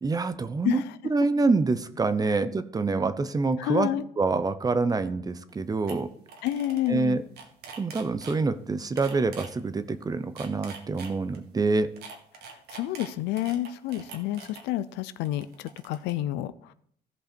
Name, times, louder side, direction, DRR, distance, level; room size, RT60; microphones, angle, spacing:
voice 1, 0.0-3.9 4.2-6.1 6.9-7.2 7.8-11.9, right 3 dB, 20° right, 12 dB, 0.7 m, -26 dB
voice 2, 3.6-4.0 6.4-7.2 12.7-16.7, left 13 dB, 90° left, 14 dB, 0.6 m, -29 dB
sound 1, 5.5-5.6 5.9-6.0 6.3-6.9 7.2-8.4 9.0-9.5 10.2-11.4 12.0-14.6 15.3-16.1, right 5 dB, 75° right, 1.8 m, -44 dB
15.5 x 5.4 x 4.4 m, 0.64 s
cardioid pair, 110°, 17 cm